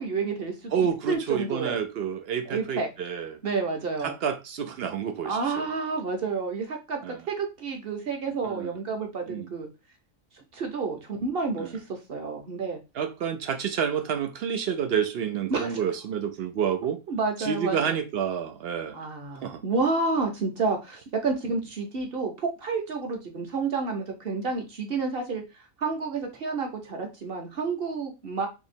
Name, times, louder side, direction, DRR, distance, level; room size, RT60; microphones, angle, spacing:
voice 1, 0.0-0.7 1.1-1.8 2.5-2.9 3.4-4.1 5.2-9.7 10.5-12.8 15.5-15.8 17.1-17.9 18.9-25.4 25.8-28.5, right 4 dB, 50° right, 1.0 m, -30 dB
voice 2, 0.7-3.4 4.0-5.7 7.0-7.2 8.4-8.7 9.3-9.5 11.6-11.8 12.9-17.0 17.4-19.1 19.4-19.6, right 7 dB, 65° right, 0.6 m, -29 dB
2.9 x 2.9 x 4.2 m
omnidirectional pair, 1.5 m